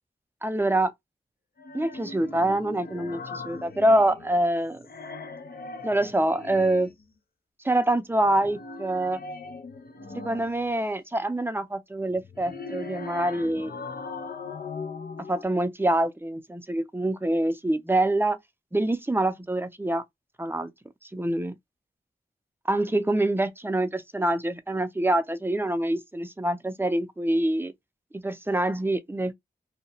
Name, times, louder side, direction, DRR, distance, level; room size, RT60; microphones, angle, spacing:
voice 1, 0.4-0.9 1.7-4.9 5.8-6.9 7.6-9.2 10.2-13.8 15.3-18.4 18.7-20.0 20.4-20.7 21.1-21.5 22.7-27.7 28.1-29.3, right 1 dB, 10° right, 0.5 m, -25 dB
sound 1, 1.6-4.4 4.7-7.0 8.2-10.7 12.1-15.4, left 3 dB, 60° left, 0.6 m, -39 dB
2.8 x 2.1 x 2.7 m
cardioid pair, 55°, 17 cm